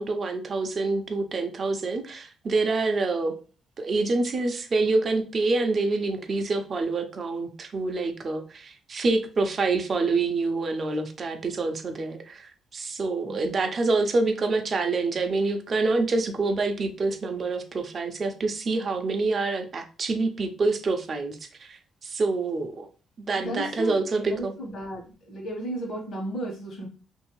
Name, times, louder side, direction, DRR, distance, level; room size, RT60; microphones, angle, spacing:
voice 1, 0.0-3.3 3.8-22.9 23.2-24.5, right 3 dB, 40° right, 6 dB, 0.5 m, -26 dB
voice 2, 13.2-13.5 23.4-26.9, right 1 dB, 60° left, -3 dB, 1.1 m, -34 dB
2.8 x 2.6 x 3.1 m, 0.37 s
cardioid pair, 95°, 0 cm